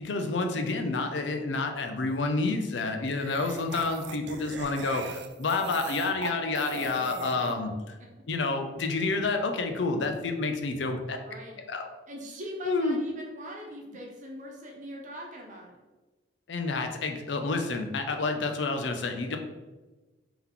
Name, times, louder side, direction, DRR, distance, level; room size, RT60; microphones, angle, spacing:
voice 1, 0.0-7.7 8.3-11.2 11.7-11.9 12.6-13.0 16.5-19.4, left 3 dB, 85° left, 5 dB, 0.5 m, -29 dB
sound 1, 2.0-2.2 3.1-7.5, right 5 dB, 70° right, 0.4 m, -40 dB
voice 2, 11.3-11.6 12.1-15.8, equal, 45° right, 0 dB, 0.8 m, -42 dB
3.7 x 2.9 x 3.7 m, 1.2 s
head